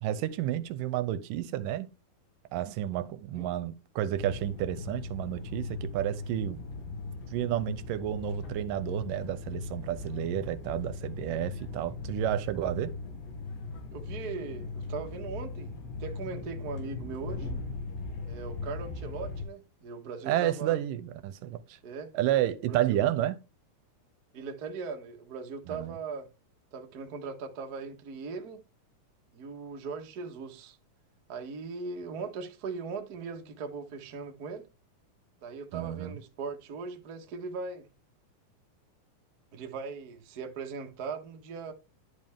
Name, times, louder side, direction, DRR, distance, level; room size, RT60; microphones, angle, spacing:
voice 1, 0.0-1.9 2.5-6.6 7.3-12.9 20.3-21.8 22.1-23.4 25.7-26.0 35.7-36.2, right 12 dB, 85° right, 2.2 m, -31 dB
sound 1, 4.1-19.4, left 3 dB, 90° left, 3.6 m, -39 dB
voice 2, 13.9-15.7 16.0-17.5 18.3-20.8 21.8-22.1 22.7-23.0 24.3-26.3 26.7-28.6 29.3-30.8 31.3-34.7 35.4-37.9 39.5-41.7, right 5 dB, 60° right, 0.9 m, -39 dB
11.0 x 5.3 x 3.5 m
omnidirectional pair, 3.9 m